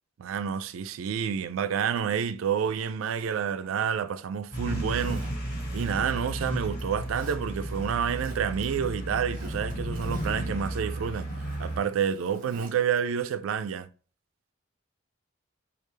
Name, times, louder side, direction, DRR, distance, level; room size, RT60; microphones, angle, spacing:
voice 1, 0.2-5.3 5.7-11.3 11.6-13.9, right 7 dB, 85° right, 0.3 m, -29 dB
Zipper (clothing), 2.4-4.3 4.9-6.3 6.7-7.4 7.9-8.6 9.0-12.7 13.1-13.2, right 2 dB, 45° right, 0.8 m, -51 dB
sound 1, 4.5-11.8, right 1 dB, 45° left, 1.5 m, -33 dB
3.3 x 2.4 x 3.2 m
head